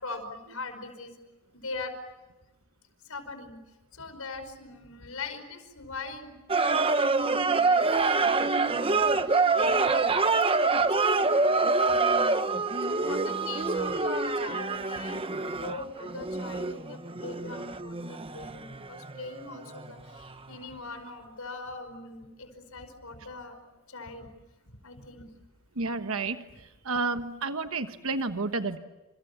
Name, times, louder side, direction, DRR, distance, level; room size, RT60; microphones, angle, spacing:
voice 1, 0.0-1.1 1.5-2.0 3.1-3.6 3.9-10.3 10.6-12.3 13.0-23.6 23.9-24.3 24.7-25.3, left 3 dB, 80° left, 8 dB, 5.3 m, -41 dB
sound 1, 6.5-19.9 20.2-20.3, right 3 dB, 25° right, 1.1 m, -26 dB
voice 2, 25.7-28.8, right 3 dB, 65° right, 8 dB, 1.3 m, -31 dB
29.5 x 28.5 x 7.1 m, 1.1 s
head